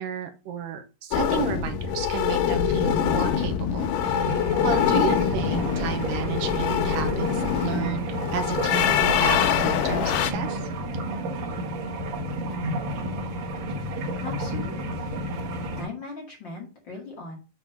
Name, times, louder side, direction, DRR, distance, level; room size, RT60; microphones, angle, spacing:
voice 1, 0.0-4.3 4.6-10.7, right 8 dB, 80° right, 8 dB, 2.5 m, -32 dB
sound 1, 1.1-10.3, left 9 dB, 80° left, 2.3 m, -24 dB
sound 2, 4.0-15.8, right 1 dB, 55° right, 2.3 m, -31 dB
voice 2, 14.2-15.1 15.8-17.4, left 3 dB, 40° left, -1 dB, 2.3 m, -39 dB
7.8 x 3.9 x 5.6 m, 0.31 s
omnidirectional pair, 3.9 m